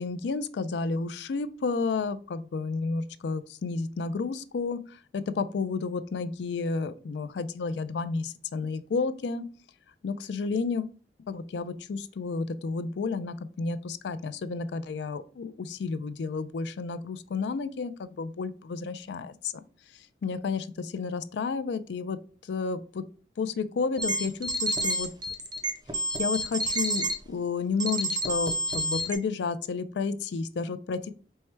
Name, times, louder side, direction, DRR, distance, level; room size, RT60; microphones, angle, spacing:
voice 1, 0.0-9.4 10.0-10.9 11.3-19.6 19.9-22.2 22.4-23.0 23.4-25.1 26.2-31.1, left 4 dB, 75° left, 13 dB, 0.4 m, -31 dB
sound 1, 24.0-27.1 27.8-29.1, right 1 dB, 25° right, 0.6 m, -29 dB
4.5 x 2.1 x 4.4 m, 0.40 s
head